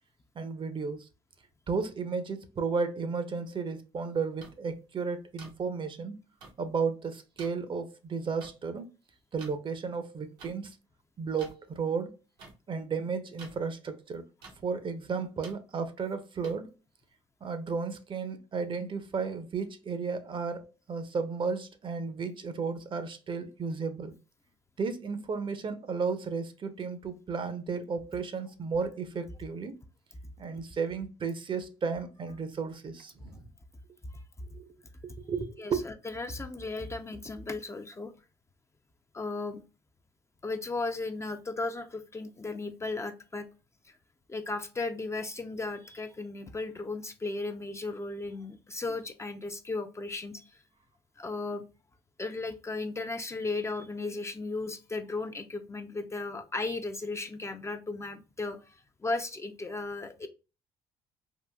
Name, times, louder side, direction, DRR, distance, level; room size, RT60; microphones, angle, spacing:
voice 1, 0.4-1.1 1.7-6.2 6.6-8.9 9.3-10.8 11.2-12.2 12.7-14.2 14.6-16.7 17.4-24.2 24.8-29.8 30.4-33.5 34.5-34.7 35.0-35.8, right 5 dB, 40° right, 0.6 m, -33 dB
sound 1, 4.4-4.5 5.4-5.5 6.4-6.5 7.4-7.5 8.4-8.5 9.4-9.5 10.4-10.5 11.4-11.5 12.4-12.5 13.4-13.5 14.4-14.5 15.4-15.5 16.4-16.5, right 3 dB, 85° right, 1.0 m, -47 dB
voice 2, 35.6-38.1 39.1-39.6 40.4-43.5 44.3-50.4 51.2-51.6 52.2-60.3, left 3 dB, 20° left, 0.4 m, -35 dB
3.7 x 2.4 x 2.2 m
supercardioid pair, 70°, 13 cm